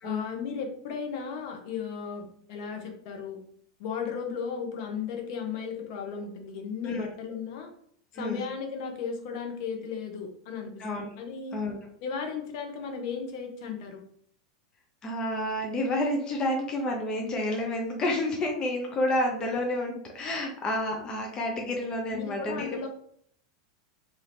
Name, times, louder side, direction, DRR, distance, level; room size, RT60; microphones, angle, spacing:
voice 1, 0.0-3.4 3.8-7.7 8.1-10.8 11.2-11.6 12.0-14.0 22.1-22.9, left 6 dB, 60° left, 3 dB, 0.8 m, -35 dB
voice 2, 8.1-8.5 10.8-11.1 11.5-11.8 15.0-22.8, left 1 dB, 30° left, 1 dB, 0.6 m, -29 dB
2.7 x 2.6 x 3.4 m, 0.64 s
hypercardioid pair, 100°, 3 cm